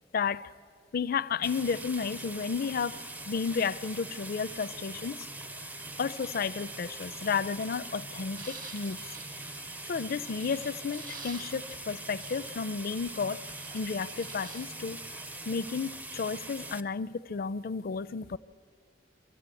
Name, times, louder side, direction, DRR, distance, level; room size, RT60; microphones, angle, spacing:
voice 1, 0.1-0.5 0.9-5.2 6.0-9.0 9.9-13.4 13.7-15.0 15.5-18.4, left 5 dB, 55° left, 0.4 m, -32 dB
sound 1, 1.4-16.8, right 2 dB, 10° right, 0.5 m, -42 dB
sound 2, 8.4-13.0 13.4-14.7, right 4 dB, 50° right, 1.9 m, -49 dB
24.5 x 14.0 x 8.3 m
head